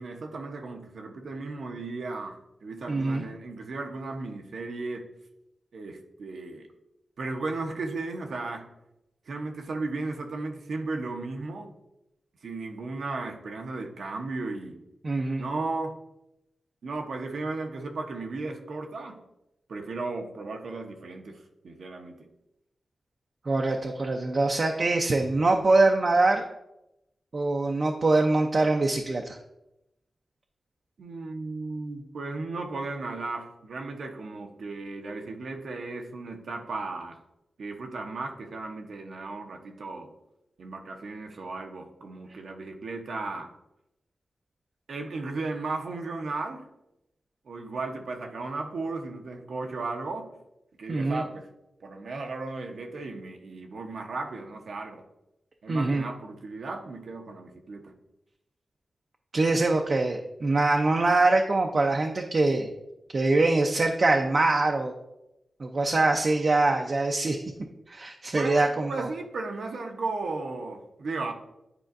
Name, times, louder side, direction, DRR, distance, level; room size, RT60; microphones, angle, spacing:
voice 1, 0.0-5.1 5.7-6.7 7.2-8.7 9.3-11.7 12.4-14.8 15.4-16.0 16.8-19.2 19.7-22.3 31.0-37.2 37.6-40.1 40.6-43.5 44.9-46.7 47.5-50.3 50.8-51.5 51.8-55.0 55.6-57.9 68.4-71.3, right 3 dB, 80° right, 3 dB, 0.8 m, -35 dB
voice 2, 2.9-3.2 15.0-15.4 23.5-26.4 27.3-29.4 50.9-51.2 55.7-56.0 59.3-62.7 63.1-64.9 65.6-67.4 67.9-69.1, right 2 dB, 50° right, 2 dB, 0.5 m, -23 dB
9.8 x 4.4 x 2.5 m, 0.88 s
wide cardioid pair, 80°, 0 cm